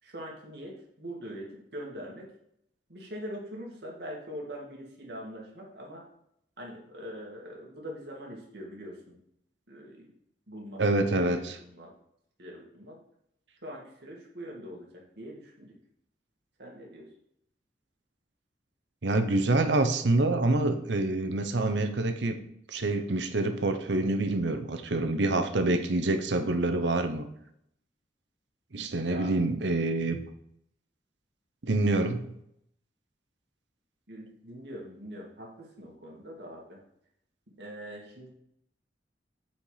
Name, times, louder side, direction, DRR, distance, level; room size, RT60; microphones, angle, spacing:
voice 1, 0.0-2.3 2.9-6.0 6.6-9.2 9.7-10.1 10.5-10.8 11.1-11.9 12.4-13.0 13.6-15.7 16.6-17.1 29.0-29.3 34.1-36.8 37.5-38.3, equal, 65° right, -2 dB, 2.1 m, -43 dB
voice 2, 10.8-11.6 19.0-22.4 22.7-27.2 28.7-30.2 31.6-32.3, right 2 dB, 90° right, 9 dB, 0.9 m, -26 dB
8.3 x 4.5 x 4.9 m, 0.74 s
head